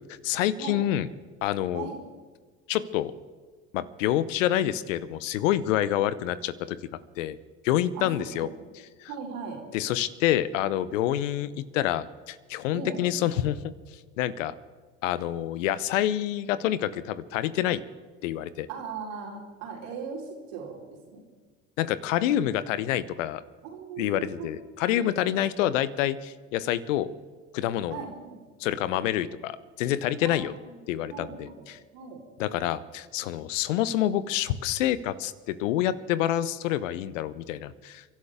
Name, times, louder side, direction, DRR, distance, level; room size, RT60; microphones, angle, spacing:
voice 1, 0.2-1.1 1.4-1.9 2.7-3.1 3.7-6.8 7.2-7.4 7.6-8.5 9.0-9.1 9.7-13.6 14.2-14.5 15.0-17.8 18.2-18.7 21.8-23.4 24.0-27.1 27.5-28.0 28.6-30.5 30.9-31.8 32.4-38.0, left 12 dB, 75° left, 16 dB, 0.9 m, -27 dB
voice 2, 7.9-8.5 9.1-9.6 12.7-13.0 18.7-20.8 21.1-21.2 23.6-24.5 24.7-24.8 25.2-25.3 27.9-28.4 30.2-30.8 31.1-31.7 31.9-32.2, right 5 dB, 75° right, -1 dB, 4.4 m, -38 dB
29.5 x 12.0 x 3.6 m, 1.4 s
hypercardioid pair, 70°, 38 cm